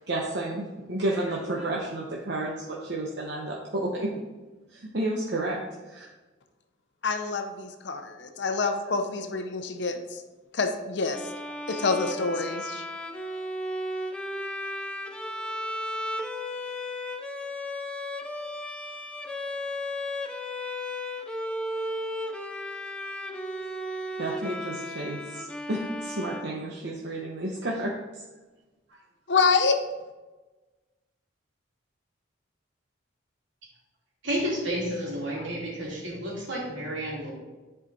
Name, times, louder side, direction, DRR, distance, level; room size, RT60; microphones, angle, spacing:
voice 1, 0.1-4.1 4.7-5.6 5.9-6.1 24.2-28.2, right 1 dB, 60° right, -3 dB, 0.9 m, -31 dB
voice 2, 7.0-10.2 10.5-11.2 11.5-12.8 29.3-29.8, left 4 dB, 60° left, 6 dB, 0.7 m, -27 dB
Bowed string instrument, 11.1-27.2, left 1 dB, 5° left, 0.4 m, -35 dB
voice 3, 34.2-37.3, equal, 75° right, -4 dB, 2.8 m, -31 dB
10.0 x 4.9 x 4.0 m, 1.2 s
head